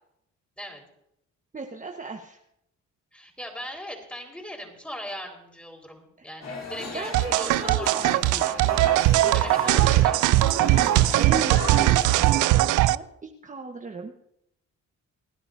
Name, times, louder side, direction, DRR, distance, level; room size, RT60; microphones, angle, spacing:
voice 1, 0.6-0.9 3.1-8.3 9.3-11.3, equal, 5° left, 2 dB, 4.4 m, -40 dB
voice 2, 1.5-2.4 6.2-6.3 6.9-8.6 9.2-10.1 11.1-14.1, right 3 dB, 25° right, 2 dB, 1.3 m, -36 dB
sound 1, 6.4-12.1, left 4 dB, 60° left, 3.6 m, -36 dB
sound 2, 7.1-12.9, right 16 dB, 80° right, 0.5 m, -20 dB
29.5 x 10.0 x 2.7 m, 0.78 s
cardioid pair, 90°, 30 cm